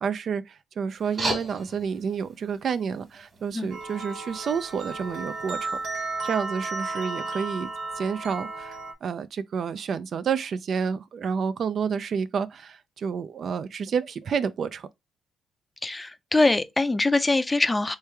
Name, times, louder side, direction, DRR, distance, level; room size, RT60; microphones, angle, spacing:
voice 1, 0.0-7.7 8.0-14.9, right 6 dB, 55° right, 0.4 m, -30 dB
sound 1, 1.0-5.9, right 2 dB, 40° right, 1.5 m, -37 dB
sound 2, 3.7-8.9, right 3 dB, 85° right, 1.1 m, -34 dB
voice 2, 15.8-18.0, left 2 dB, 15° left, 0.5 m, -23 dB
3.3 x 3.2 x 3.3 m
cardioid pair, 90°, 0 cm